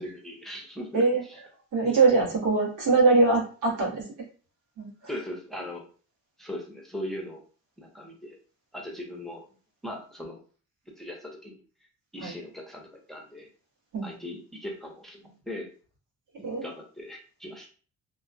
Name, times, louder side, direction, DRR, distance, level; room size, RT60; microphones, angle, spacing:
voice 1, 0.0-1.4 5.1-5.9 6.4-7.4 7.8-8.4 8.7-9.5 9.8-10.4 10.9-11.6 12.1-13.5 14.0-15.7 16.4-17.7, left 1 dB, ahead, 0 dB, 0.8 m, -39 dB
voice 2, 1.7-4.1 4.8-4.9 12.2-12.3 13.9-14.1 16.4-16.7, right 3 dB, 90° right, -4 dB, 1.4 m, -22 dB
2.8 x 2.3 x 2.5 m, 0.39 s
cardioid pair, 90°, 30 cm